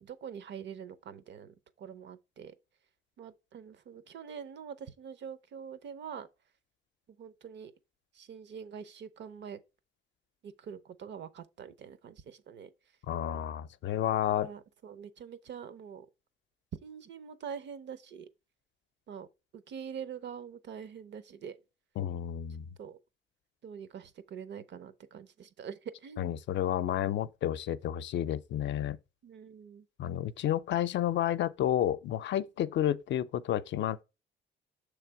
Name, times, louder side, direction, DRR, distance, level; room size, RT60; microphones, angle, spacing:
voice 1, 0.0-2.5 3.2-6.3 7.2-7.7 8.1-9.6 10.4-12.7 14.4-16.1 16.8-18.3 19.1-19.3 19.5-21.6 22.8-23.0 23.6-26.3 29.2-29.8, right 7 dB, 65° right, 0.7 m, -44 dB
voice 2, 13.1-14.5 22.0-22.7 26.2-29.0 30.0-34.0, left 11 dB, 65° left, 0.5 m, -31 dB
6.7 x 3.3 x 4.6 m
cardioid pair, 90°, 20 cm